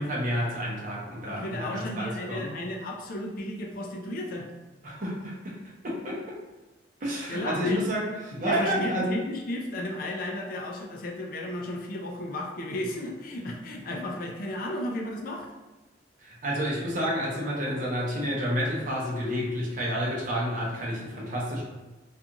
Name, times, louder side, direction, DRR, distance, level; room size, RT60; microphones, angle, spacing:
voice 1, 0.0-2.5 4.8-5.6 5.8-6.4 7.0-9.1 16.2-21.6, equal, 45° right, -4 dB, 0.7 m, -30 dB
voice 2, 1.3-4.5 7.3-7.8 8.4-15.5, left 1 dB, 50° left, 0 dB, 0.4 m, -34 dB
2.5 x 2.3 x 2.8 m, 1.1 s
head